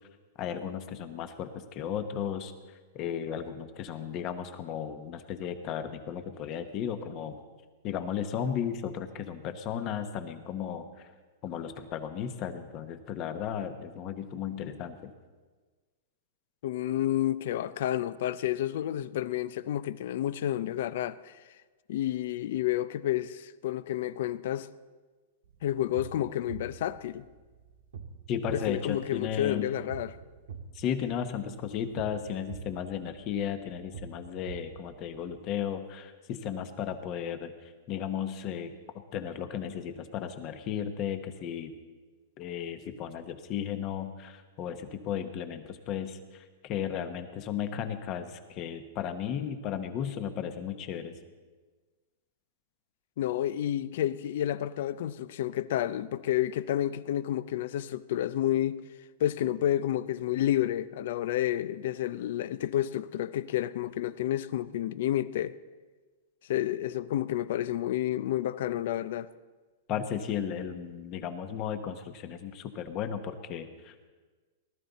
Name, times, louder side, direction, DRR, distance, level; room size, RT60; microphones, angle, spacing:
voice 1, 0.4-2.5 2.9-7.4 7.8-11.1 11.4-15.1 28.3-29.7 30.7-38.7 39.1-41.7 42.4-51.1 69.9-74.1, left 8 dB, 35° left, 1.1 m, -35 dB
voice 2, 16.6-21.4 21.9-24.7 25.6-27.3 28.5-30.2 53.2-58.8 59.2-65.5 66.5-69.3, left 12 dB, 65° left, 0.5 m, -30 dB
sound 1, 25.4-35.4, right 6 dB, 85° right, 1.7 m, -47 dB
18.5 x 12.5 x 4.1 m
hypercardioid pair, 145°, 0 cm